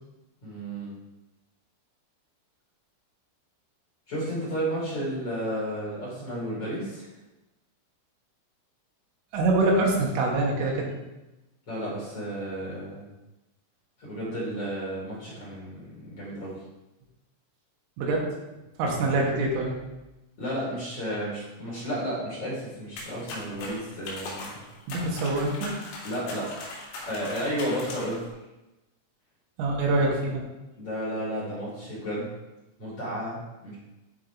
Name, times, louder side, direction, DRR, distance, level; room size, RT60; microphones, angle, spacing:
voice 1, 0.4-0.9 4.1-7.1 11.7-13.0 14.0-16.6 20.4-24.6 26.0-28.3 30.8-32.3 32.8-33.7, equal, 35° left, -7 dB, 3.6 m, -32 dB
voice 2, 9.3-10.9 18.0-18.3 18.8-19.8 24.9-25.8 29.6-30.4, right 2 dB, 75° right, -1 dB, 4.0 m, -25 dB
sound 1, 23.0-28.3, left 2 dB, 75° left, 5.0 m, -39 dB
13.5 x 4.8 x 4.7 m, 1.0 s
omnidirectional pair, 6.0 m